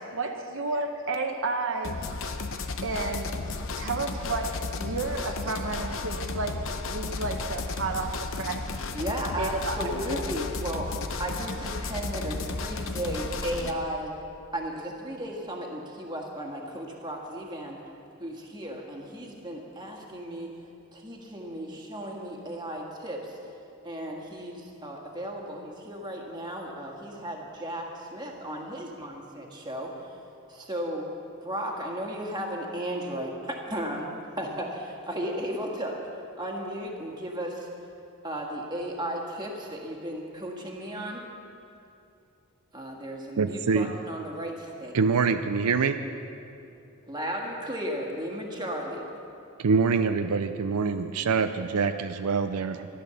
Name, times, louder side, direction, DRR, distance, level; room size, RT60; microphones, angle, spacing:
voice 1, 0.1-2.0 2.8-8.6 9.4-9.8 10.1-10.2, right 3 dB, 60° right, 4 dB, 0.9 m, -32 dB
sound 1, 1.8-13.7, left 3 dB, 60° left, 0.9 m, -33 dB
voice 2, 8.9-10.9 11.2-14.1 14.5-17.8 18.2-20.5 20.9-23.4 23.8-29.9 30.5-31.1 31.4-36.0 36.4-37.7 38.2-41.2 42.7-45.0 47.1-49.0, equal, 20° right, 0 dB, 1.7 m, -35 dB
voice 3, 43.4-43.9 44.9-46.0 49.6-52.9, right 5 dB, 80° right, 9 dB, 0.5 m, -25 dB
14.0 x 11.5 x 7.0 m, 2.7 s
head